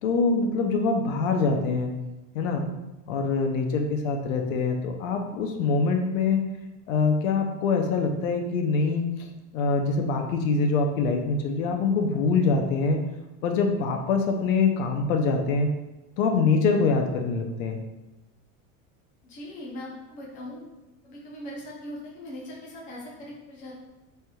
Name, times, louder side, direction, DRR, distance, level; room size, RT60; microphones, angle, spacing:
voice 1, 0.0-1.9 2.3-2.7 3.1-6.4 6.9-9.3 9.5-13.1 13.4-15.7 16.2-17.8, left 4 dB, 80° left, 3 dB, 0.7 m, -24 dB
voice 2, 19.2-20.7 21.0-23.7, left 1 dB, 20° left, -4 dB, 0.6 m, -40 dB
4.2 x 3.4 x 2.3 m, 1.0 s
supercardioid pair, 180°, 39 cm